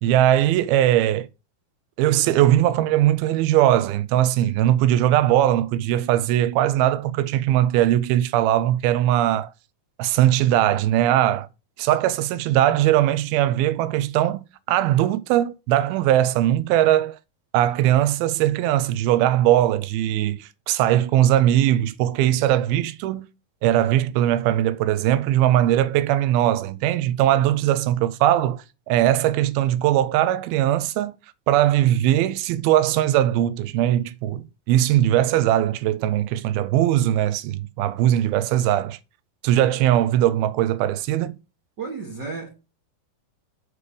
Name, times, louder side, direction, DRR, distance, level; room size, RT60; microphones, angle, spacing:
voice 1, 0.0-1.3 2.0-9.5 10.0-11.5 11.8-17.2 17.5-23.3 23.6-31.2 31.5-39.0 39.4-41.3, right 12 dB, 80° right, 2.5 m, -20 dB
voice 2, 41.8-42.5, right 4 dB, 60° right, 1.1 m, -33 dB
6.8 x 4.8 x 6.9 m
omnidirectional pair, 4.4 m